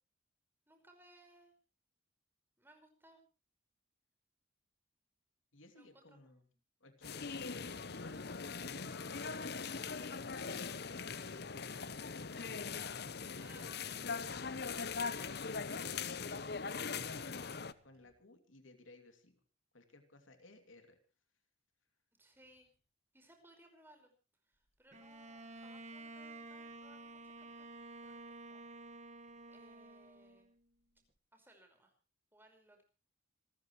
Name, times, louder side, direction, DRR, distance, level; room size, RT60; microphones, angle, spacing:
voice 1, 0.7-1.5 2.6-3.2 5.7-6.6 13.4-13.8 22.2-22.7 23.1-24.1 24.4-28.6 29.5-30.5 31.3-31.9 32.3-32.8, right 1 dB, 10° right, 4 dB, 5.2 m, -64 dB
voice 2, 5.5-6.4 6.8-10.4 10.8-12.4 13.5-15.9 16.2-19.4 19.7-21.0, left 2 dB, 80° left, 7 dB, 2.9 m, -60 dB
sound 1, 7.0-17.7, left 5 dB, 55° left, 0.9 m, -41 dB
sound 2, 8.2-18.1, right 1 dB, 50° right, 5.0 m, -70 dB
Bowed string instrument, 24.9-30.7, right 2 dB, 35° right, 1.7 m, -51 dB
27.0 x 14.5 x 3.2 m, 0.34 s
head